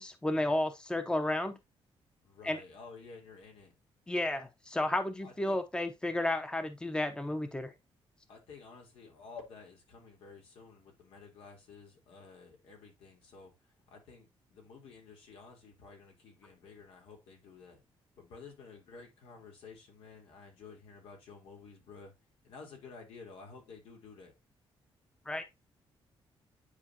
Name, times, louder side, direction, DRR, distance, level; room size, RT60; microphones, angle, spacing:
voice 1, 0.0-1.6 2.4-2.6 4.1-7.7 25.3-25.4, left 1 dB, 10° left, 0.8 m, -32 dB
voice 2, 2.2-3.7 5.2-5.6 8.3-17.8 18.2-22.1 22.4-24.3, left 4 dB, 90° left, 3.3 m, -52 dB
9.8 x 4.5 x 2.8 m
cardioid pair, 140°, 10 cm